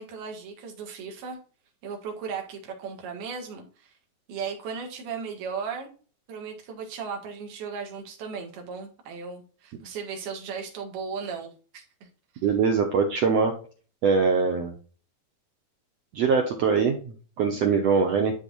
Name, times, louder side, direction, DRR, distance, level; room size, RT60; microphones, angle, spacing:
voice 1, 0.0-1.4 1.8-3.9 4.3-5.9 6.3-11.8, right 6 dB, 90° right, 2 dB, 3.7 m, -36 dB
voice 2, 12.4-13.5 14.0-14.7 16.1-18.3, right 5 dB, 75° right, 3 dB, 1.5 m, -23 dB
12.0 x 4.1 x 2.5 m, 0.38 s
omnidirectional pair, 4.3 m